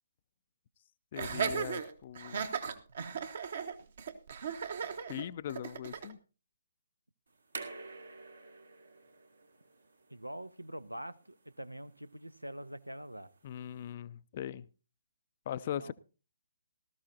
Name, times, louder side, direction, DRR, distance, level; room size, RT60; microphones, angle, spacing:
voice 1, 1.1-2.5 5.1-6.2 13.4-14.7 15.5-15.9, left 10 dB, 40° left, 0.5 m, -40 dB
Laughter, 1.1-6.1, right 6 dB, 50° right, 1.3 m, -36 dB
sound 1, 7.3-13.9, right 3 dB, 70° right, 2.4 m, -51 dB
voice 2, 10.1-13.3 15.8-15.9, right 1 dB, 85° right, 0.8 m, -44 dB
18.5 x 13.5 x 2.7 m
figure-of-eight pair, 135°, 0 cm